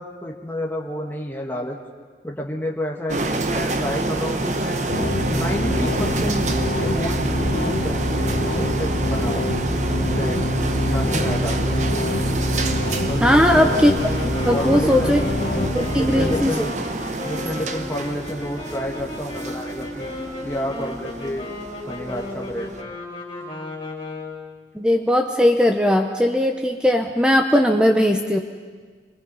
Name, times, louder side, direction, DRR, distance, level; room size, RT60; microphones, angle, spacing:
voice 1, 0.0-1.8 2.2-4.8 5.3-6.5 6.8-9.4 10.0-10.5 10.8-11.6 13.1-13.7 14.5-15.3 15.9-16.7 17.2-20.1 20.4-21.5 21.9-22.7, equal, 10° left, 0 dB, 1.5 m, -30 dB
sound 1, 3.1-22.8, right 2 dB, 40° right, 1.1 m, -28 dB
sound 2, 4.9-16.4, left 1 dB, 80° left, 1.4 m, -25 dB
voice 2, 13.2-13.9 14.2-15.2 15.6-16.7 24.7-28.4, left 1 dB, 5° right, 4 dB, 0.8 m, -18 dB
sound 3, 13.6-24.6, left 2 dB, 25° left, 4.5 m, -34 dB
24.0 x 20.5 x 5.5 m, 1.5 s
head